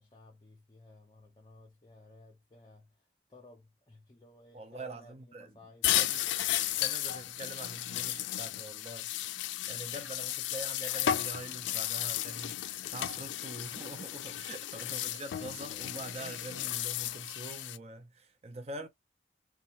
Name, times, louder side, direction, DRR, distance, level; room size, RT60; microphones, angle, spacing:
voice 1, 0.0-6.1 14.3-14.6, left 2 dB, 25° left, 0.5 m, -57 dB
voice 2, 4.5-5.6 5.9-6.3 6.7-18.9, right 2 dB, 35° right, 0.5 m, -44 dB
sound 1, 5.8-17.8, left 13 dB, 90° left, 0.3 m, -34 dB
2.8 x 2.2 x 2.8 m
head